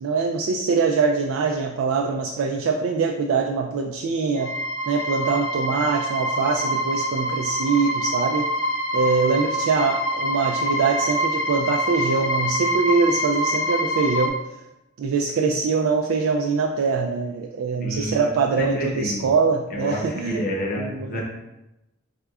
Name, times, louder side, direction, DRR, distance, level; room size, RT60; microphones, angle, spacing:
voice 1, 0.0-4.5 4.9-8.5 8.9-14.3 15.0-20.4 20.8-21.2, right 5 dB, 90° right, 2 dB, 0.3 m, -23 dB
sound 1, 4.4-14.3, equal, 65° left, 0.5 m, -25 dB
voice 2, 17.8-19.2 19.7-21.2, left 1 dB, 45° left, -2 dB, 0.9 m, -29 dB
4.4 x 3.3 x 2.4 m, 0.95 s
head